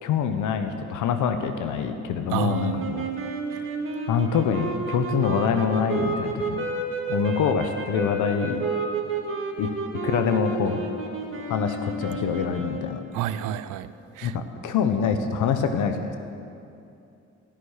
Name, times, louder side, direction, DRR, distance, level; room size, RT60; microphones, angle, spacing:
voice 1, 0.0-3.1 4.1-6.7 7.1-8.7 9.6-9.7 10.0-10.8 11.5-13.0 14.2-16.2, left 7 dB, 80° left, 8 dB, 0.9 m, -25 dB
voice 2, 2.3-2.6 13.1-13.9 14.2-14.3, right 11 dB, 90° right, 14 dB, 0.5 m, -29 dB
sound 1, 2.5-13.2, right 3 dB, 45° right, 1.9 m, -31 dB
13.5 x 6.4 x 9.5 m, 2.6 s
cardioid pair, 90°, 30 cm